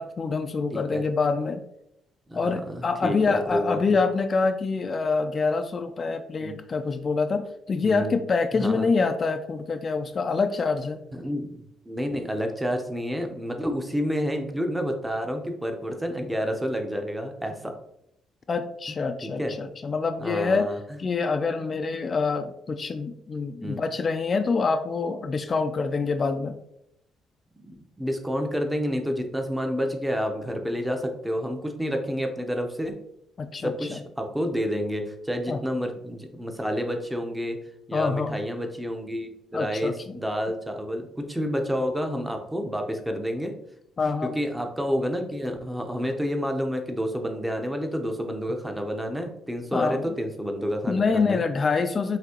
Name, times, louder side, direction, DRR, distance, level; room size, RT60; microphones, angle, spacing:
voice 1, 0.0-1.6 2.3-11.0 18.5-20.7 21.0-26.6 33.4-34.0 35.5-35.6 37.9-38.4 39.5-40.2 44.0-44.4 49.7-50.2 50.9-52.2, left 4 dB, 40° left, 8 dB, 0.3 m, -26 dB
voice 2, 0.7-1.0 2.3-3.8 6.4-6.6 7.8-8.1 8.5-8.9 11.1-17.7 19.2-19.5 20.2-20.8 23.6-23.8 27.6-33.0 33.6-37.6 37.9-43.5 44.0-51.4, equal, 10° right, 4 dB, 0.7 m, -29 dB
5.8 x 2.7 x 2.9 m, 0.77 s
cardioid pair, 90°, 0 cm